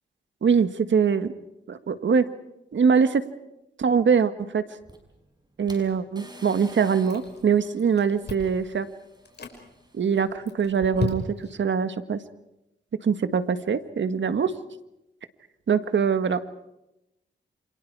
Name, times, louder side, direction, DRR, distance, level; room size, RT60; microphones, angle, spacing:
voice 1, 0.4-1.3 1.7-2.3 2.7-3.2 3.8-4.6 5.6-8.9 9.9-12.2 13.0-14.5 15.7-16.4, right 6 dB, 70° right, 10 dB, 1.6 m, -23 dB
sound 1, 4.8-10.3, right 1 dB, 20° right, 6.0 m, -50 dB
Chewing mastication, 6.6-7.5 7.8-8.6 9.1-9.6 10.1-11.6, left 5 dB, 60° left, 5.5 m, -34 dB
29.0 x 27.0 x 4.8 m, 0.89 s
cardioid pair, 75°, 19 cm